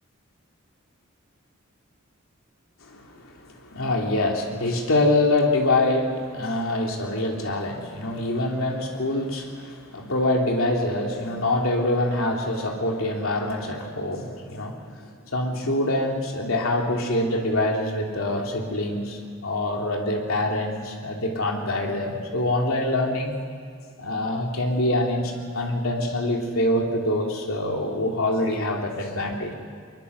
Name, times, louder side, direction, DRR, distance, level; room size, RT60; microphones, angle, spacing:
voice 1, 2.8-23.4 24.0-29.5, left 1 dB, 75° left, 0 dB, 3.2 m, -25 dB
22.5 x 22.0 x 6.9 m, 2.2 s
head